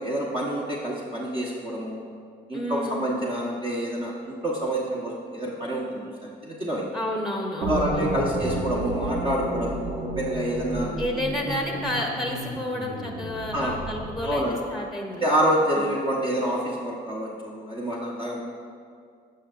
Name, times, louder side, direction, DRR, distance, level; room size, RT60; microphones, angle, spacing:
voice 1, 0.0-2.0 2.5-6.0 6.4-6.8 7.7-10.9 13.5-13.8 14.2-14.6 15.2-18.4, right 1 dB, 30° right, -4 dB, 1.1 m, -27 dB
voice 2, 2.5-3.0 6.9-8.3 11.0-14.4 14.7-15.3 15.7-16.0, left 1 dB, ahead, 0 dB, 1.1 m, -30 dB
sound 1, 7.6-14.5, right 1 dB, 75° right, 1.3 m, -32 dB
12.0 x 5.5 x 2.5 m, 2.2 s
supercardioid pair, 70°, 20 cm